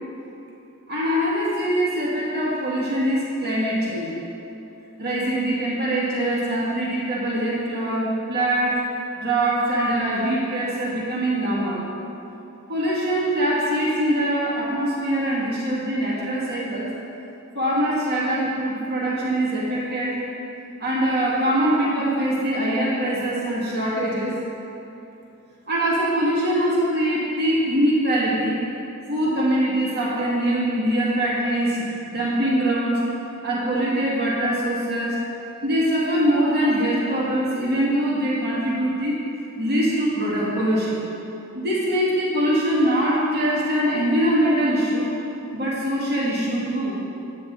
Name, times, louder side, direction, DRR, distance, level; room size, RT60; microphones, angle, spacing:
voice 1, 0.9-4.1 5.0-8.9 9.2-11.8 12.7-16.9 17.5-20.3 20.8-24.3 25.7-28.6 29.1-33.0 33.4-35.2 35.6-39.2 39.6-41.0 41.5-45.1 45.5-47.0, right 1 dB, 50° right, -6 dB, 2.1 m, -23 dB
9.3 x 9.2 x 4.0 m, 2.8 s
head